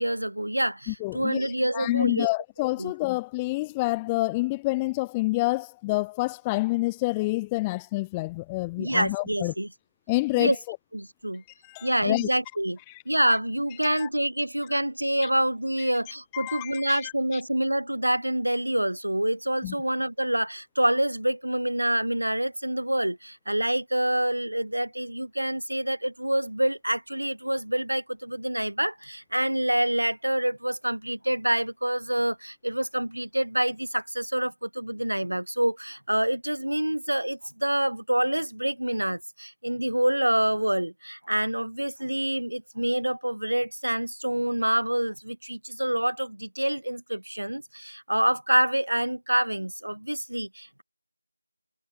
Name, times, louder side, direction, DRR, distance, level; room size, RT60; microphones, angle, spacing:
voice 1, 0.0-2.3 2.8-2.9 8.8-9.7 10.4-10.6 10.9-11.4 11.8-12.8 13.1-50.8, right 1 dB, 85° right, 4.4 m, -27 dB
voice 2, 0.9-9.5 10.1-10.8 11.7-12.3 13.8-14.1 16.3-17.1 19.6-19.7, left 22 dB, 5° left, 0.5 m, -28 dB
figure-of-eight pair, 175°, 0 cm